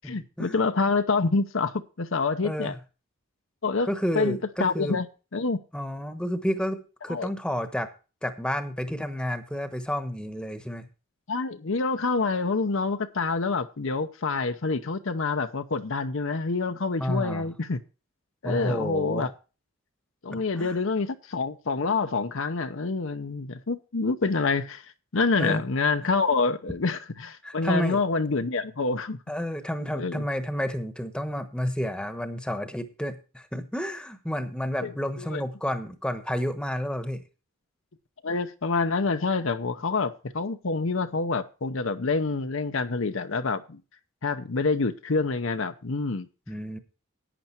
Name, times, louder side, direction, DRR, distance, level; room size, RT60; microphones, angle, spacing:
voice 1, 0.0-2.7 3.6-3.9 4.1-5.1 5.3-5.6 7.1-7.3 11.3-17.8 18.4-19.3 20.2-29.2 29.9-30.2 34.8-35.4 38.2-43.8 44.2-46.3, left 4 dB, 60° left, 0.8 m, -27 dB
voice 2, 2.4-2.7 3.8-5.0 5.7-7.9 8.2-10.9 17.0-17.5 18.4-19.3 20.3-20.8 25.4-25.6 27.4-28.0 29.3-37.2 46.5-46.8, equal, 5° left, 1.1 m, -30 dB
11.0 x 9.2 x 4.4 m
head